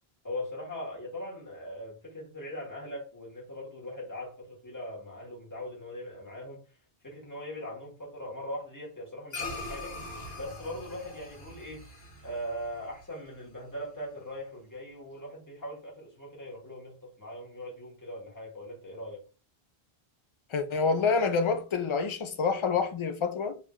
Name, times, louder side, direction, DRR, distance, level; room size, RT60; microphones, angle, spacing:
voice 1, 0.2-6.6 7.0-9.9 10.4-11.8 12.2-19.2, left 1 dB, 20° left, 1.5 m, -40 dB
sound 1, 9.3-13.9, left 2 dB, 75° left, 1.6 m, -42 dB
voice 2, 20.5-23.6, left 5 dB, 50° left, 0.4 m, -27 dB
3.1 x 2.8 x 3.7 m
omnidirectional pair, 1.0 m